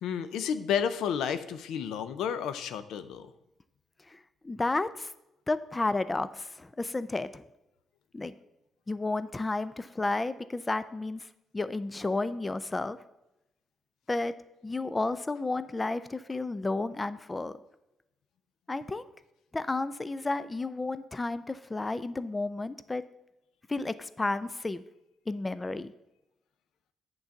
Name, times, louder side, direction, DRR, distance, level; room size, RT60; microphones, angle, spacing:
voice 1, 0.0-3.3, left 8 dB, 80° left, 11 dB, 0.6 m, -31 dB
voice 2, 4.1-5.1 5.5-7.4 8.1-8.3 8.9-11.3 11.5-13.0 14.1-14.3 14.6-17.6 18.7-19.1 19.5-23.0 23.7-24.8 25.3-25.9, left 2 dB, 20° left, 14 dB, 0.4 m, -32 dB
8.7 x 3.9 x 7.0 m, 0.90 s
cardioid pair, 90°, 0 cm